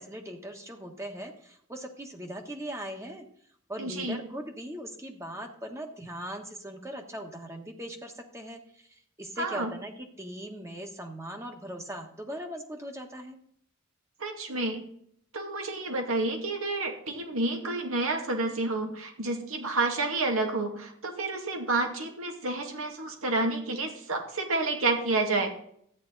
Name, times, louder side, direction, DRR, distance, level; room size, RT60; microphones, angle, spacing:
voice 1, 0.0-3.2 3.7-13.4, equal, 15° right, 3 dB, 1.3 m, -40 dB
voice 2, 3.8-4.2 9.4-9.7 14.2-14.8 15.3-25.5, right 2 dB, 80° right, 3 dB, 2.3 m, -29 dB
13.5 x 9.5 x 4.0 m, 0.67 s
head